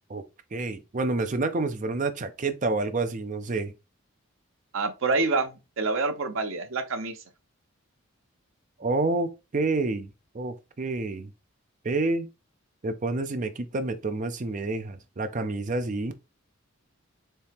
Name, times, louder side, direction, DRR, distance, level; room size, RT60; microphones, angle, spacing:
voice 1, 0.5-3.7 8.8-10.1 10.3-11.3 11.8-12.3 12.8-16.1, right 3 dB, 35° right, 0.5 m, -28 dB
voice 2, 4.7-7.2, right 3 dB, 70° right, 0.7 m, -27 dB
4.2 x 2.8 x 3.4 m
head